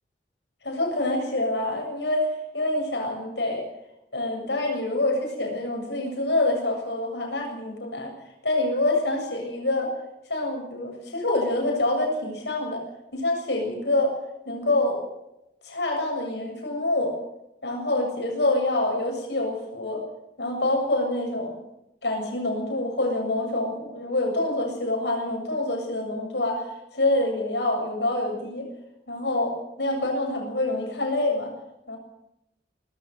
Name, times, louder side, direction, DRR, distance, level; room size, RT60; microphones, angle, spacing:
voice 1, 0.6-3.6 4.1-8.1 8.4-10.0 10.3-12.8 13.1-14.2 14.4-15.1 15.6-17.2 17.6-20.0 20.4-21.6 22.0-26.7 26.9-28.7 29.1-31.5 31.9-32.0, left 2 dB, 70° left, 1 dB, 7.4 m, -26 dB
20.0 x 15.0 x 9.3 m, 0.88 s
head